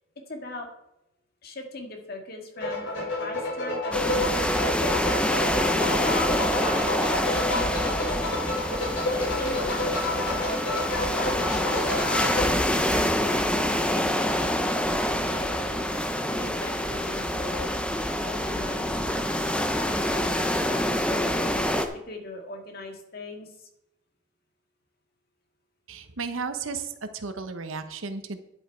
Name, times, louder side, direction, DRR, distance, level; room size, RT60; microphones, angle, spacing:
voice 1, 0.3-0.7 1.4-4.7 5.8-8.2 8.9-10.5 11.1-15.9 16.2-17.7 18.2-19.4 20.1-21.0 21.9-23.7, left 2 dB, 50° left, 3 dB, 1.9 m, -40 dB
sound 1, 2.6-12.4, left 1 dB, 65° left, 3.0 m, -29 dB
sound 2, 3.9-21.8, left 1 dB, 5° left, 0.7 m, -26 dB
voice 2, 25.9-28.4, right 4 dB, 85° right, 9 dB, 1.0 m, -34 dB
10.5 x 7.9 x 4.5 m, 0.87 s
head